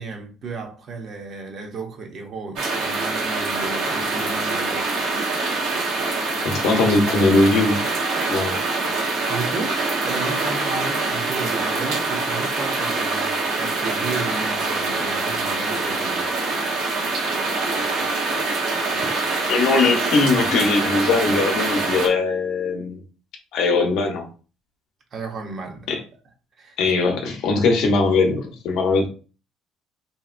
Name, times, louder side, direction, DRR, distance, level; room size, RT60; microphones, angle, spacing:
voice 1, 0.0-4.9 9.1-16.3 25.1-25.9 26.6-26.8, right 3 dB, 45° right, 0.7 m, -34 dB
sound 1, 2.6-22.1, right 3 dB, 75° right, 0.9 m, -24 dB
voice 2, 6.4-7.8 8.3-8.6 19.5-23.0 23.5-24.3 25.9-26.0 26.8-29.1, left 3 dB, 70° left, 0.7 m, -20 dB
2.9 x 2.7 x 2.4 m
cardioid pair, 130°, 0 cm